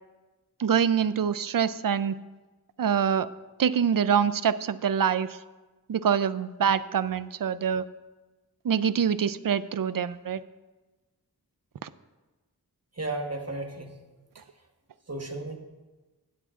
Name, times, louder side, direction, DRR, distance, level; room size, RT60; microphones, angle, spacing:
voice 1, 0.6-2.2 2.8-3.3 3.6-5.4 5.9-7.9 8.6-10.4 11.8-11.9, right 7 dB, 60° right, 15 dB, 0.4 m, -25 dB
voice 2, 13.0-14.0 15.1-15.6, right 2 dB, 40° right, 3 dB, 1.3 m, -33 dB
18.0 x 8.1 x 2.5 m, 1.2 s
wide cardioid pair, 45°, 39 cm